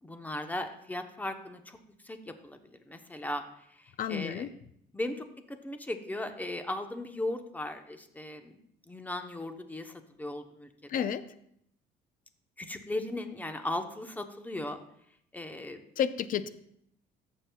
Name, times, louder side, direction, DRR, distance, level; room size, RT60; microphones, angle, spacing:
voice 1, 0.0-1.8 2.0-3.4 3.7-4.5 4.9-8.5 8.9-11.0 12.6-14.8 15.3-15.8, left 1 dB, 10° left, 7 dB, 0.9 m, -37 dB
voice 2, 4.0-4.5 10.9-11.3 16.0-16.5, left 8 dB, 55° left, 13 dB, 0.6 m, -31 dB
14.0 x 7.4 x 2.3 m, 0.71 s
cardioid pair, 110°, 17 cm